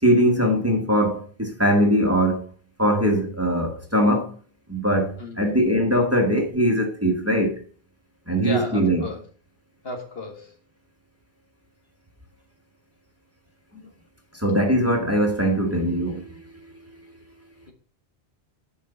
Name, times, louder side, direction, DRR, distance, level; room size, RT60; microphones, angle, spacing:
voice 1, 0.0-2.5 2.8-4.4 4.7-7.6 8.3-9.1 14.3-17.1, equal, 15° right, 1.4 m, -21 dB
voice 2, 5.2-5.5 8.4-9.2 9.8-10.5, left 2 dB, 65° left, 1.9 m, -33 dB
6.4 x 5.4 x 6.8 m
omnidirectional pair, 1.1 m